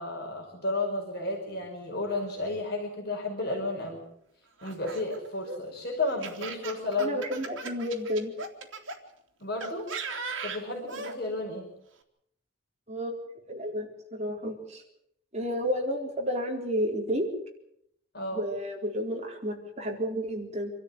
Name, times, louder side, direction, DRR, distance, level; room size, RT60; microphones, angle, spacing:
voice 1, 0.0-4.0 4.6-7.5 9.4-9.9 10.4-11.7 18.1-18.5, left 2 dB, 50° left, 0 dB, 5.2 m, -32 dB
Laughter, 4.6-9.0 9.6-11.2, right 4 dB, 70° right, 3.3 m, -38 dB
voice 2, 7.0-8.3 12.9-13.2 13.5-14.8 15.3-17.3 18.3-20.7, equal, 35° right, 2 dB, 4.0 m, -31 dB
27.0 x 13.5 x 9.8 m, 0.75 s
head